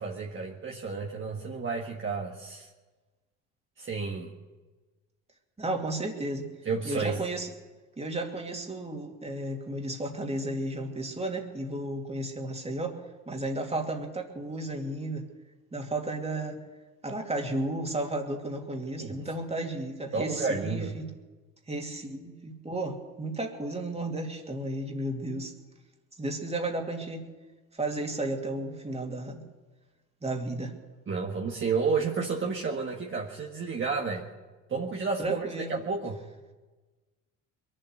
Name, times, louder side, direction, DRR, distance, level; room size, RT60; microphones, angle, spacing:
voice 1, 0.0-2.7 3.8-4.3 6.6-7.2 19.0-19.2 20.1-20.9 31.1-34.3 34.7-36.2, right 4 dB, 35° right, -1 dB, 1.7 m, -31 dB
voice 2, 5.6-6.5 6.8-7.5 8.0-13.0 13.3-15.3 15.7-16.6 17.0-21.1 21.7-25.5 26.2-27.2 27.7-29.4 30.2-30.8 35.2-35.8, right 2 dB, 20° right, 2 dB, 2.7 m, -33 dB
22.0 x 7.7 x 8.0 m, 1.2 s
supercardioid pair, 75°, 33 cm